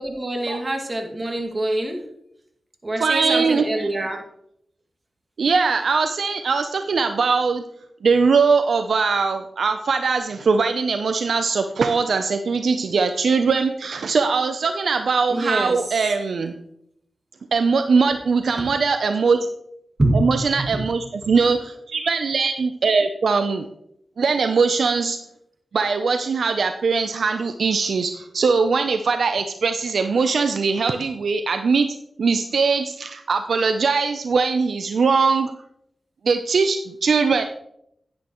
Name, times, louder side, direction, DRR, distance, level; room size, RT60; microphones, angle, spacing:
voice 1, 0.0-2.0 2.8-4.2 15.3-16.0 20.0-20.2 20.6-20.8 21.2-21.3, right 1 dB, 40° right, 2 dB, 2.1 m, -25 dB
voice 2, 3.0-3.9 5.4-7.6 8.0-16.5 17.5-19.5 20.1-23.7 24.2-25.2 25.7-35.5 36.2-37.5, right 4 dB, 80° right, 7 dB, 0.5 m, -21 dB
10.5 x 9.5 x 3.0 m, 0.74 s
cardioid pair, 50°, 0 cm